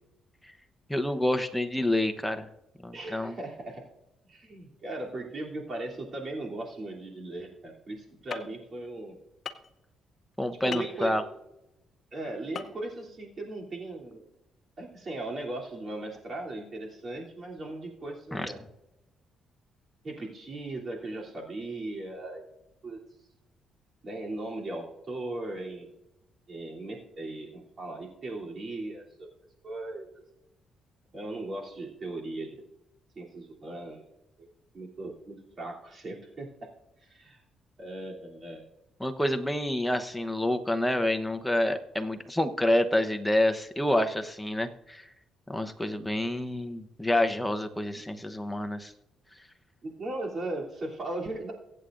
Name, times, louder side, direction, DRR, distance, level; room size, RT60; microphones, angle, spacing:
voice 1, 0.9-2.5 2.8-3.4 10.4-11.2 18.3-18.5 39.0-45.1 45.5-48.9, left 1 dB, 5° left, 6 dB, 0.9 m, -28 dB
voice 2, 2.9-3.8 4.3-9.2 10.6-11.1 12.1-14.3 14.8-18.6 20.0-22.5 22.8-23.0 24.0-25.9 26.5-29.3 29.6-30.1 31.1-32.6 33.1-34.0 34.4-36.5 37.0-37.4 37.8-38.6 49.8-51.5, right 2 dB, 45° right, -2 dB, 3.1 m, -38 dB
sound 1, 8.3-8.4 9.5-9.7 10.7-10.9 12.5-12.7 13.0-13.1, left 6 dB, 50° left, 0.7 m, -36 dB
23.5 x 8.3 x 2.6 m, 0.90 s
cardioid pair, 90°, 0 cm